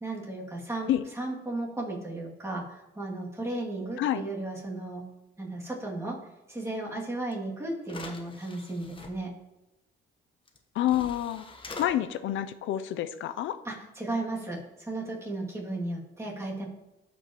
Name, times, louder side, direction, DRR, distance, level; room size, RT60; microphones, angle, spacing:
voice 1, 0.0-0.9 1.2-2.6 3.0-5.0 5.4-6.2 6.5-9.3 13.6-14.6 14.9-16.7, right 2 dB, 15° right, -4 dB, 2.4 m, -34 dB
sound 1, 7.3-7.4 7.8-9.1 10.5-10.6 10.9-11.9, left 2 dB, 25° left, 1.1 m, -43 dB
voice 2, 10.8-11.4 11.8-13.6, left 12 dB, 80° left, 12 dB, 0.5 m, -28 dB
12.5 x 5.2 x 3.0 m, 0.96 s
cardioid pair, 90°, 20 cm